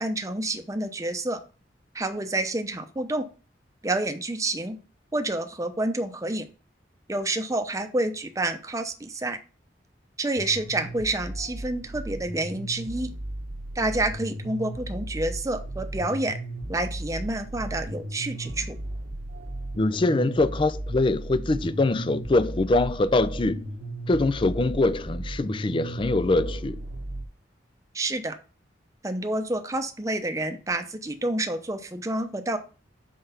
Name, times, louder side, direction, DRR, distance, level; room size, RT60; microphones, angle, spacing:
voice 1, 0.0-1.4 1.9-3.3 3.8-4.8 5.1-6.5 7.1-9.4 10.2-13.1 13.7-16.4 16.7-18.8 27.9-28.4 29.0-32.6, right 2 dB, 20° right, 0.7 m, -28 dB
sound 1, 10.4-27.2, right 1 dB, 70° right, 1.0 m, -36 dB
voice 2, 19.8-23.7 24.1-26.8, left 2 dB, 30° left, 0.4 m, -23 dB
5.7 x 4.6 x 5.6 m
head